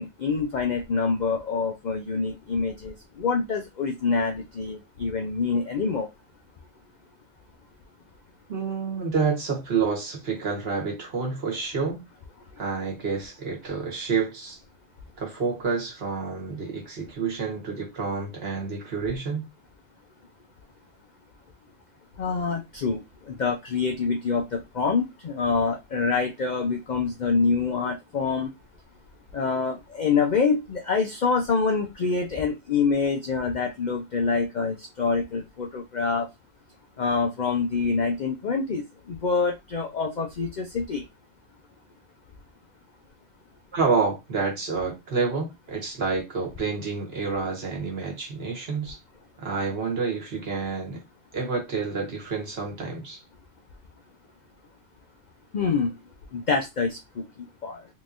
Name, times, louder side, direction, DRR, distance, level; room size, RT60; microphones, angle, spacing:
voice 1, 0.0-6.1 22.2-28.5 29.3-36.3 37.0-41.0 55.5-55.9 56.3-57.2 57.6-57.8, left 4 dB, 80° left, 0.4 m, -26 dB
voice 2, 8.5-12.0 12.6-14.6 15.2-19.5 43.7-49.0 49.4-51.0 51.3-53.2, right 4 dB, 50° right, 1.3 m, -28 dB
3.7 x 2.9 x 2.5 m
omnidirectional pair, 1.4 m